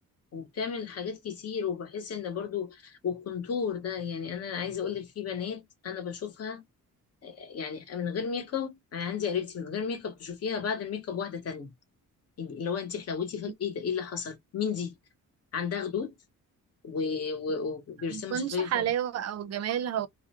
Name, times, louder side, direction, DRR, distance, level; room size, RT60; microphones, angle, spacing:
voice 1, 0.3-6.6 7.2-11.7 12.4-14.9 15.5-16.1 16.8-18.9, left 6 dB, 50° left, 0.8 m, -33 dB
voice 2, 18.1-20.1, right 10 dB, 50° right, 0.5 m, -30 dB
2.4 x 2.0 x 2.7 m
wide cardioid pair, 165°, 32 cm